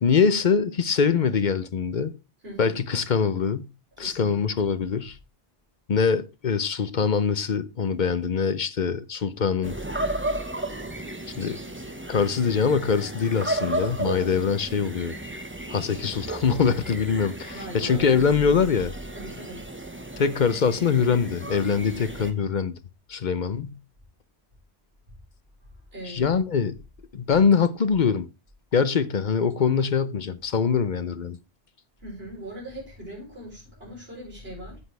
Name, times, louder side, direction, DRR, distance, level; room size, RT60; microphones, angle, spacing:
voice 1, 0.0-2.1 2.6-3.7 4.0-5.2 5.9-9.8 11.3-11.6 12.1-15.1 15.7-18.9 20.2-22.7 23.1-23.8 26.1-26.8 27.1-28.3 28.7-31.4, left 6 dB, 50° left, 0.8 m, -23 dB
voice 2, 2.4-2.8 4.0-4.4 14.4-14.5 17.5-18.2 19.1-19.7 25.9-26.3 32.0-34.8, right 1 dB, 65° right, 6.2 m, -40 dB
sound 1, 9.6-22.3, right 1 dB, 10° right, 1.3 m, -34 dB
9.6 x 8.1 x 3.3 m
omnidirectional pair, 1.1 m